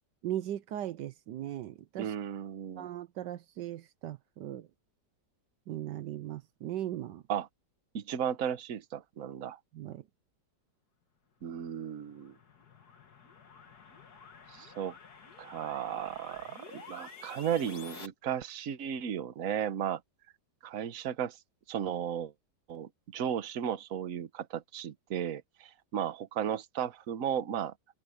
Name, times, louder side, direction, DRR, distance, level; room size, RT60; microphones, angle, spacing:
voice 1, 0.2-2.1 2.8-4.7 5.7-7.2 9.7-10.1, right 12 dB, 80° right, 1.4 m, -38 dB
voice 2, 2.0-2.9 7.3-7.5 7.9-9.6 11.4-12.3 14.5-14.9 15.4-20.0 20.6-21.4 21.7-22.3 22.7-27.7, right 9 dB, 55° right, 1.3 m, -35 dB
sound 1, 11.6-18.1, left 5 dB, 60° left, 2.4 m, -51 dB
open air
omnidirectional pair, 1.9 m